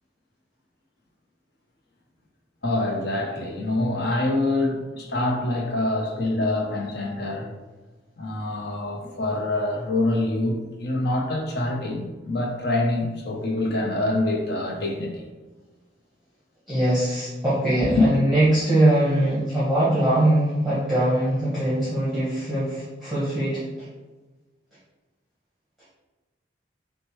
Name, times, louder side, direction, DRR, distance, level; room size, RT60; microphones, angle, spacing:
voice 1, 2.6-7.5 8.2-15.3 17.8-18.1, left 2 dB, 60° left, 1 dB, 0.8 m, -25 dB
voice 2, 16.7-23.6, right 1 dB, ahead, -11 dB, 1.2 m, -22 dB
6.3 x 2.2 x 3.1 m, 1.2 s
head